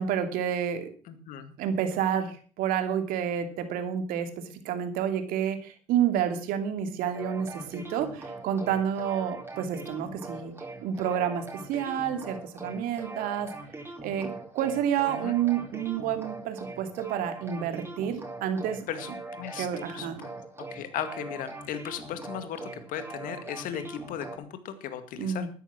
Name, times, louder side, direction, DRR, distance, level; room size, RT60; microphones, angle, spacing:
voice 1, 0.0-0.9 1.6-4.3 4.6-10.5 10.8-11.4 11.7-13.5 14.0-18.8 19.6-20.2 25.2-25.5, right 9 dB, 65° right, 7 dB, 2.7 m, -29 dB
voice 2, 1.1-1.5 15.1-15.4 18.9-20.3 20.7-25.5, left 9 dB, 60° left, 10 dB, 2.2 m, -37 dB
sound 1, 7.1-24.4, right 2 dB, 15° right, 4.4 m, -42 dB
13.0 x 10.0 x 6.1 m, 0.41 s
hypercardioid pair, 75°, 16 cm